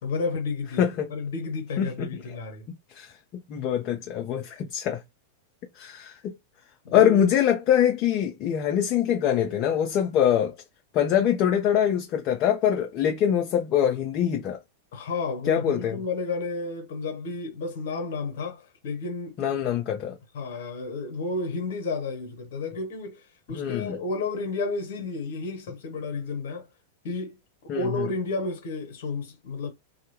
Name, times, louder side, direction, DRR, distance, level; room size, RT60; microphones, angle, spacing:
voice 1, 0.0-0.8 1.1-2.6 6.8-7.2 14.9-19.6 20.3-26.7 27.0-27.4 27.7-29.7, left 3 dB, 60° left, 1.0 m, -32 dB
voice 2, 1.8-2.1 2.7-5.0 5.8-6.3 6.9-10.5 10.9-14.6 15.5-16.0 19.4-20.2 23.5-24.0 27.7-28.1, left 9 dB, 40° left, 0.5 m, -24 dB
2.2 x 2.1 x 3.0 m
figure-of-eight pair, 95°, 0 cm